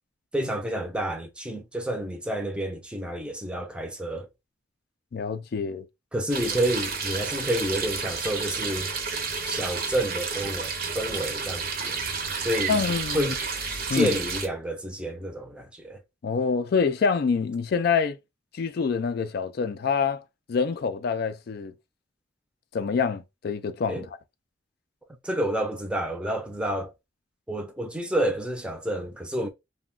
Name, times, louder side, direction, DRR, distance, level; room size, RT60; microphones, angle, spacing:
voice 1, 0.3-4.3 6.1-8.9 9.5-12.0 12.4-12.8 13.1-13.4 13.9-16.0 23.9-24.1 25.2-26.9 27.5-29.5, right 1 dB, 5° right, 0.5 m, -29 dB
voice 2, 5.1-5.8 12.7-13.3 13.9-14.2 16.2-18.2 18.5-20.2 20.5-21.7 22.7-24.1, left 5 dB, 55° left, 0.3 m, -26 dB
sound 1, 6.3-14.5, right 5 dB, 50° right, 0.7 m, -31 dB
2.3 x 2.1 x 3.7 m
head